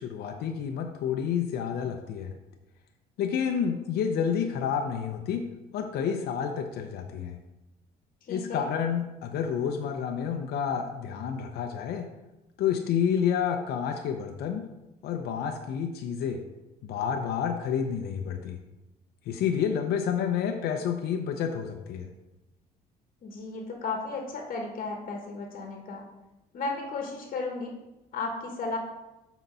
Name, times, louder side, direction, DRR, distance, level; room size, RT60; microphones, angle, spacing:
voice 1, 0.0-2.3 3.2-5.4 5.7-7.4 8.3-12.1 12.6-14.7 15.0-16.4 16.8-18.6 19.3-22.1, left 7 dB, 70° left, 4 dB, 0.7 m, -29 dB
voice 2, 8.2-8.7 23.2-26.0 26.5-27.7 28.1-28.8, left 3 dB, 50° left, 1 dB, 1.2 m, -34 dB
6.1 x 4.0 x 5.5 m, 1.0 s
cardioid pair, 110°, 17 cm